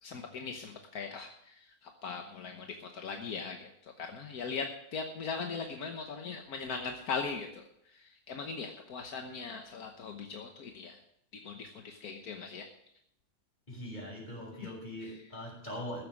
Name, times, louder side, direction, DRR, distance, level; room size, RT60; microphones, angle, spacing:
voice 1, 0.0-11.0 11.4-12.7 15.0-15.2, left 5 dB, 75° left, 4 dB, 1.6 m, -40 dB
voice 2, 13.7-16.0, equal, 30° left, -2 dB, 5.9 m, -41 dB
15.0 x 8.1 x 6.4 m, 0.75 s
omnidirectional pair, 1.6 m